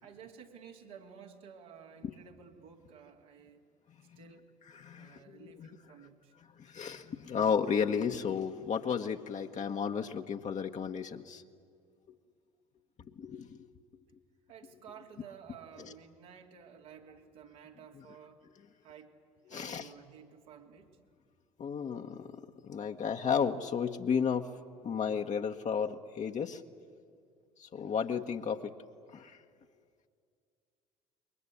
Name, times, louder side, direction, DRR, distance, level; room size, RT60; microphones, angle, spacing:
voice 1, 0.0-3.7 4.2-4.5 4.9-6.3 14.5-18.4 18.8-19.1 19.5-20.9, right 7 dB, 75° right, 0 dB, 2.7 m, -53 dB
voice 2, 4.7-5.7 6.6-11.4 13.0-13.7 15.8-15.9 17.9-18.0 19.5-19.9 21.6-24.5 24.8-26.6 27.6-28.7 29.1-29.4, left 7 dB, 45° left, 4 dB, 1.3 m, -33 dB
28.0 x 22.5 x 8.5 m, 2.2 s
hypercardioid pair, 55°, 17 cm